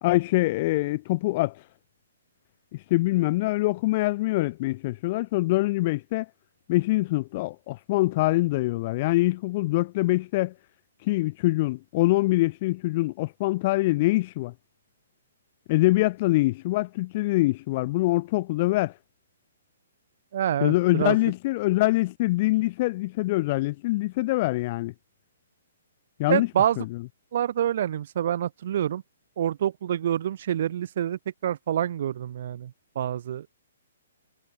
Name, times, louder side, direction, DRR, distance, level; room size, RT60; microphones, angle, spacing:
voice 1, 0.0-1.6 2.9-6.3 6.7-10.5 11.0-14.5 15.7-18.9 20.6-24.9 26.2-26.5 26.8-27.0, left 19 dB, 35° left, 0.5 m, -24 dB
voice 2, 20.3-21.2 26.3-26.8 27.3-29.0 29.4-32.7 33.0-33.6, right 10 dB, 50° right, 0.5 m, -27 dB
figure-of-eight pair, 120°, 0 cm